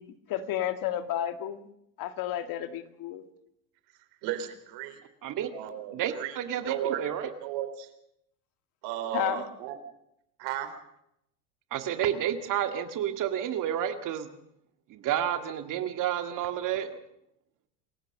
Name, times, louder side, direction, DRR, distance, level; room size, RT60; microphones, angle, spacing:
voice 1, 0.0-1.6 2.0-3.2 9.1-9.4, left 11 dB, 45° left, 9 dB, 2.1 m, -32 dB
voice 2, 4.2-5.0 5.5-7.0 7.4-7.9 8.8-9.8 10.4-10.8, right 11 dB, 60° right, 9 dB, 4.0 m, -35 dB
voice 3, 5.9-7.2 11.7-14.3 14.9-16.9, right 10 dB, 40° right, 7 dB, 2.1 m, -30 dB
27.5 x 15.0 x 6.7 m, 0.77 s
supercardioid pair, 125°, 46 cm